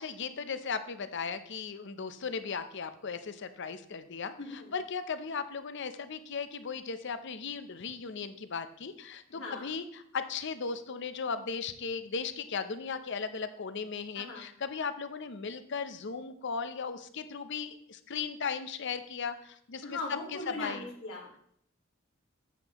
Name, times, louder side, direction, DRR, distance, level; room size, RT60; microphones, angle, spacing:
voice 1, 0.0-20.0 20.3-20.9, left 5 dB, 60° left, 11 dB, 0.7 m, -37 dB
voice 2, 4.4-4.7 9.3-9.7 14.2-14.5 19.8-21.4, left 2 dB, 90° left, -3 dB, 2.0 m, -39 dB
9.1 x 8.1 x 3.0 m, 0.67 s
head